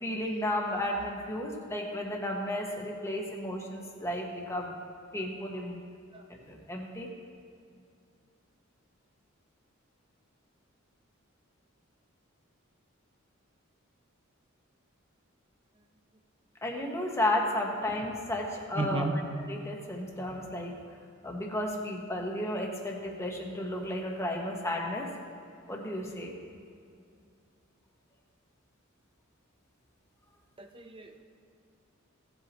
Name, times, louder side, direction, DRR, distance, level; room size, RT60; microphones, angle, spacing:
voice 1, 0.0-4.7 5.1-5.7 6.5-7.1 16.6-19.1 19.5-20.7 21.2-25.1 25.7-26.3, left 1 dB, 15° left, 0 dB, 1.2 m, -33 dB
voice 2, 18.8-19.1 30.6-31.2, right 2 dB, 25° right, 5 dB, 0.7 m, -33 dB
17.0 x 8.0 x 3.0 m, 2.4 s
head